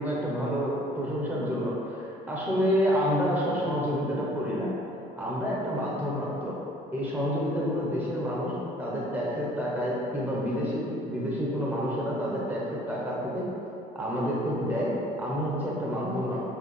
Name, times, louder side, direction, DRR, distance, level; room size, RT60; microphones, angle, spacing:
voice 1, 0.0-4.7 5.2-6.6 6.9-13.5 13.9-16.4, equal, 10° right, -6 dB, 1.0 m, -29 dB
4.8 x 2.8 x 3.3 m, 2.8 s
cardioid pair, 110°, 17 cm